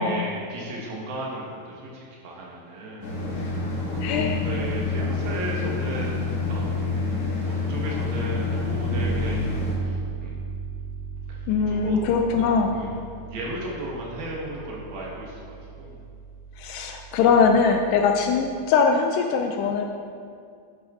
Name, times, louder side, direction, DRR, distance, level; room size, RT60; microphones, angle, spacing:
voice 1, 0.0-3.1 3.9-6.2 6.4-6.7 7.5-9.5 9.8-10.4 11.7-12.0 12.6-12.9 13.3-16.0, right 1 dB, 65° right, -3 dB, 2.8 m, -35 dB
sound 1, 3.0-9.7, left 3 dB, 50° left, 1.9 m, -27 dB
voice 2, 4.0-4.4 11.5-12.7 16.6-19.8, left 5 dB, 80° left, 3 dB, 2.5 m, -21 dB
Bass guitar, 8.9-18.7, right 6 dB, 85° right, 3.0 m, -37 dB
12.5 x 8.7 x 3.6 m, 2.3 s
omnidirectional pair, 5.1 m